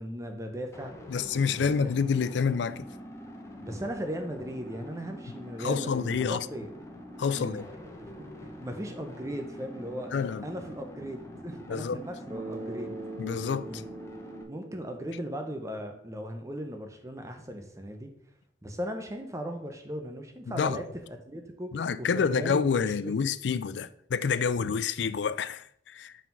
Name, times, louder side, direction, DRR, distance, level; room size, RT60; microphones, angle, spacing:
voice 1, 0.0-0.9 1.5-1.7 3.6-6.7 7.3-12.9 13.7-13.8 14.5-18.1 18.6-23.3, equal, 15° right, 0.7 m, -38 dB
sound 1, 0.7-14.4, equal, 15° left, 0.9 m, -45 dB
voice 2, 1.1-2.9 5.6-6.5 7.2-7.7 10.1-10.4 11.7-12.0 13.2-13.8 20.5-20.8 21.7-26.1, left 6 dB, 75° left, 0.4 m, -28 dB
Bass guitar, 12.3-16.3, right 2 dB, 35° right, 1.5 m, -42 dB
5.7 x 5.0 x 5.4 m
head